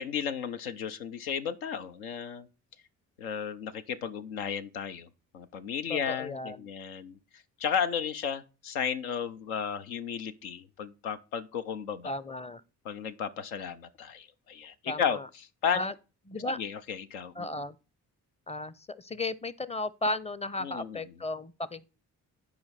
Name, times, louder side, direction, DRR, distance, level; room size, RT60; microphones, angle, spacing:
voice 1, 0.0-2.5 3.2-12.1 12.8-15.2 15.6-15.8 16.5-17.7 20.6-21.0, left 7 dB, 80° left, 0.6 m, -34 dB
voice 2, 5.9-6.7 12.0-12.6 14.9-15.3 15.7-15.9 16.3-16.6 17.4-17.8 18.5-21.8, left 2 dB, 15° left, 0.6 m, -35 dB
10.5 x 4.9 x 4.1 m
hypercardioid pair, 40°, 43 cm